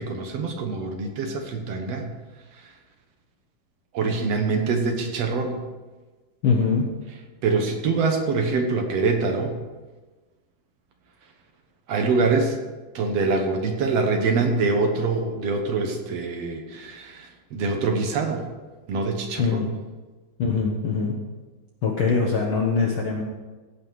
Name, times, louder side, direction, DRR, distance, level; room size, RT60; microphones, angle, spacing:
voice 1, 0.0-2.1 3.9-5.6 7.4-9.6 11.9-12.6 12.9-18.4 18.9-19.7, right 4 dB, 65° right, 4 dB, 1.8 m, -24 dB
voice 2, 6.4-6.8 19.4-19.7 20.4-21.1 21.8-23.2, left 5 dB, 70° left, -1 dB, 1.2 m, -22 dB
16.5 x 5.6 x 6.3 m, 1.3 s
omnidirectional pair, 3.9 m